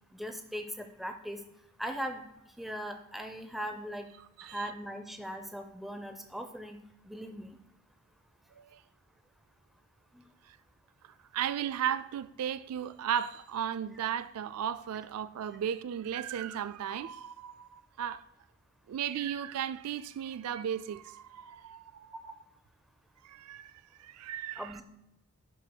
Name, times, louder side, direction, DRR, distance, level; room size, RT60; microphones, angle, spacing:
voice 1, 0.1-1.4 1.8-2.2 2.6-4.1 4.4-7.6 22.2-22.3 24.6-24.8, equal, ahead, 0.5 m, -39 dB
voice 2, 4.4-4.7 8.6-8.8 10.5-10.6 11.0-18.2 18.9-22.3 23.2-24.8, right 9 dB, 85° right, 0.3 m, -36 dB
11.0 x 4.4 x 2.2 m
head